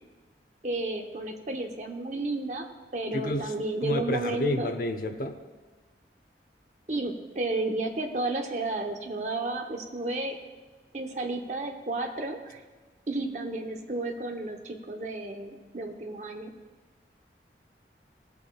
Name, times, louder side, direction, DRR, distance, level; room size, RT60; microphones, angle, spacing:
voice 1, 0.6-2.7 2.9-4.7 6.9-10.3 10.9-12.6 13.1-16.5, right 2 dB, 40° right, 4 dB, 0.8 m, -32 dB
voice 2, 3.1-3.5 3.8-5.4, left 1 dB, 50° left, 7 dB, 0.7 m, -29 dB
17.5 x 8.2 x 2.3 m, 1.3 s
head